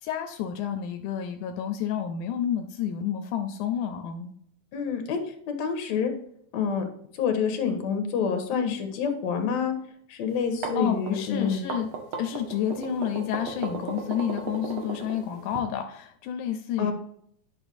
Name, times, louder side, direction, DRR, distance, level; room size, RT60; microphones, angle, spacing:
voice 1, 0.0-4.3 8.5-8.8 10.8-11.9 12.2-16.9, left 9 dB, 85° left, 5 dB, 2.1 m, -30 dB
voice 2, 4.7-5.2 5.5-6.1 6.5-6.8 7.1-9.8 10.1-11.6 16.8-16.9, left 6 dB, 70° left, 5 dB, 2.4 m, -27 dB
sound 1, 10.4-15.6, right 5 dB, 65° right, 1.4 m, -35 dB
9.8 x 6.0 x 2.6 m, 0.67 s
omnidirectional pair, 3.4 m